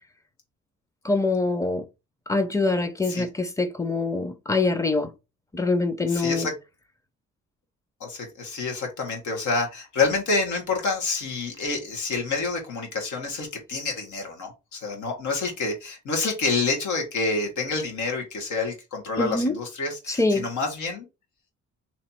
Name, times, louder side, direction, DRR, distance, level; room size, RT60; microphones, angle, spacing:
voice 1, 1.0-1.8 2.3-5.1 5.5-6.5 19.2-19.5 20.1-20.4, left 3 dB, 10° left, 0.7 m, -24 dB
voice 2, 6.1-6.5 8.0-21.1, left 3 dB, 75° left, 1.7 m, -28 dB
3.2 x 2.9 x 4.3 m
cardioid pair, 90°, 30 cm